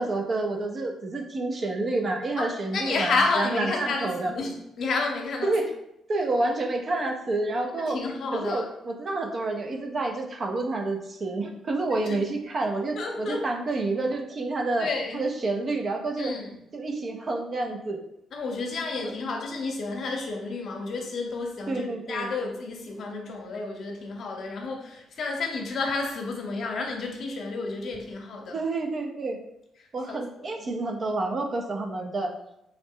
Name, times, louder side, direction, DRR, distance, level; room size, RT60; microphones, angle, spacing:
voice 1, 0.0-4.3 5.4-5.7 6.1-8.0 8.3-14.9 15.1-16.3 16.7-18.0 19.0-19.1 21.7-22.3 28.5-29.4 29.9-32.3, right 2 dB, 40° right, 3 dB, 0.5 m, -29 dB
voice 2, 2.4-5.6 7.9-8.7 11.9-12.2 12.9-13.4 14.8-15.2 16.2-16.5 18.3-28.6 30.1-30.7, left 3 dB, 60° left, 2 dB, 0.7 m, -31 dB
3.7 x 2.1 x 3.6 m, 0.80 s
cardioid pair, 90°, 0 cm